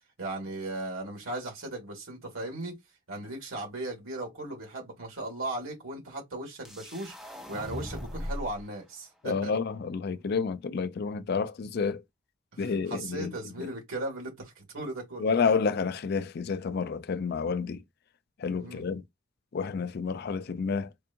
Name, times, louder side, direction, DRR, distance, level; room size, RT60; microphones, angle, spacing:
voice 1, 0.2-2.8 3.1-9.5 12.5-15.3 18.6-18.9, right 2 dB, 85° right, 1.9 m, -37 dB
sound 1, 6.6-8.6, equal, ahead, 0.8 m, -38 dB
voice 2, 9.2-12.0 12.6-13.3 13.6-13.7 15.2-17.8 18.4-19.0 19.5-20.9, left 5 dB, 50° left, 0.4 m, -29 dB
4.5 x 2.7 x 2.6 m
head